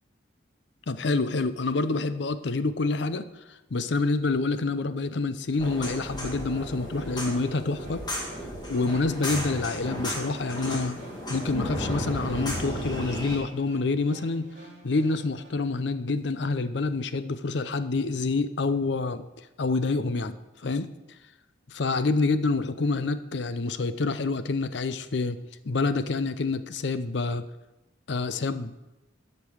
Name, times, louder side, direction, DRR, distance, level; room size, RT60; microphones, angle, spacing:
voice 1, 0.9-8.0 8.7-11.0 11.3-14.5 14.8-20.4 20.6-20.9 21.7-25.4 25.6-27.5 28.1-28.7, left 3 dB, 65° left, 13 dB, 0.6 m, -27 dB
sound 1, 5.6-13.4, equal, 20° left, 1.9 m, -34 dB
sound 2, 6.3-15.5, equal, 40° right, 2.6 m, -51 dB
13.0 x 5.4 x 6.3 m, 1.0 s
head